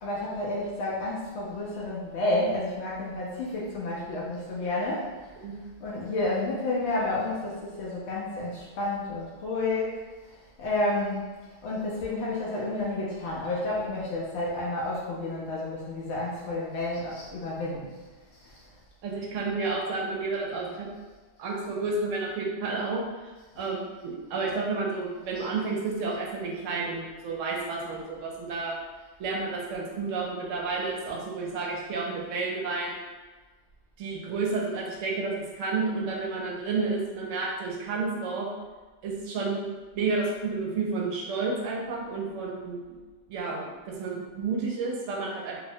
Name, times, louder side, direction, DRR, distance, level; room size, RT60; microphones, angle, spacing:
voice 1, 0.0-5.3 5.8-10.0 10.6-11.3 11.6-17.9 18.4-18.6 41.9-42.0, left 2 dB, 70° left, -6 dB, 0.8 m, -30 dB
voice 2, 19.0-20.9 21.4-28.8 29.2-33.0 34.0-38.5 39.0-43.0 43.3-45.6, right 3 dB, 85° right, -2 dB, 0.9 m, -31 dB
2.7 x 2.0 x 2.6 m, 1.3 s
omnidirectional pair, 1.3 m